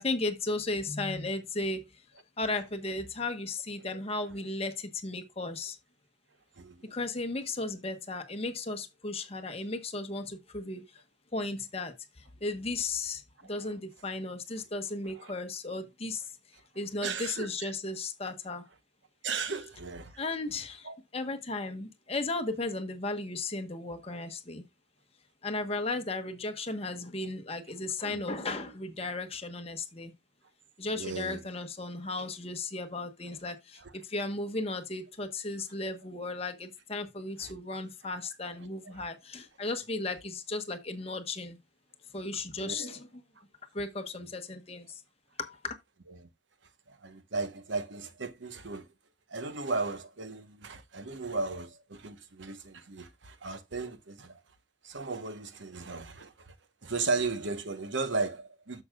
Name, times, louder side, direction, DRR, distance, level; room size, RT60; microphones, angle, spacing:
voice 1, 0.0-1.9 2.4-5.8 6.8-11.0 11.3-16.3 16.7-18.6 20.2-24.6 25.4-30.1 30.8-41.6 42.1-43.1 43.7-45.0 45.4-45.7, left 2 dB, 30° left, 1.2 m, -35 dB
voice 2, 6.6-6.9 13.4-13.6 17.0-17.7 19.2-20.2 20.8-21.0 28.1-28.4 31.0-31.4 33.8-33.9 37.4-37.6 38.5-38.6 38.8-38.9 42.6-43.0 46.2-46.3 46.9-48.9 49.3-54.4 54.8-56.5 56.8-58.8, right 3 dB, 75° right, 1.1 m, -36 dB
10.5 x 7.1 x 2.3 m
head